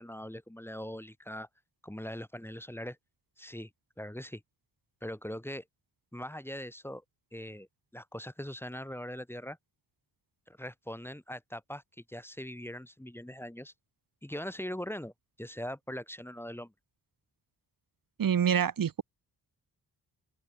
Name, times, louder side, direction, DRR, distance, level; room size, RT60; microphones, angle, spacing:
voice 1, 0.0-1.5 1.8-3.0 3.4-3.7 4.0-4.4 5.0-5.6 6.1-7.0 7.3-7.7 7.9-9.6 10.5-13.7 14.2-15.1 15.4-16.7, equal, 5° left, 1.8 m, -41 dB
voice 2, 18.2-19.0, right 8 dB, 55° right, 1.3 m, -26 dB
open air
cardioid pair, 80°, 41 cm